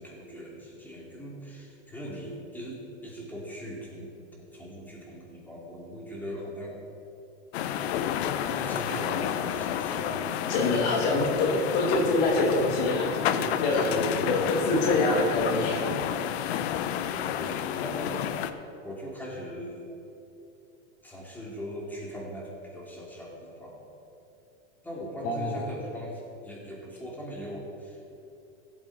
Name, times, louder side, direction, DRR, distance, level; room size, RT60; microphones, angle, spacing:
voice 1, 0.0-4.1 4.5-6.8 7.8-8.1 8.5-10.2 13.7-14.7 17.1-18.6 18.8-19.8 21.0-23.8 24.8-28.1, equal, 5° left, -4 dB, 2.6 m, -39 dB
sound 1, 7.5-18.5, left 10 dB, 65° left, 0.7 m, -30 dB
voice 2, 9.9-13.2 13.4-13.9 14.3-15.9 16.9-17.0 25.2-25.6, left 2 dB, 50° left, -1 dB, 2.2 m, -26 dB
15.5 x 8.3 x 4.0 m, 2.8 s
supercardioid pair, 130°, 34 cm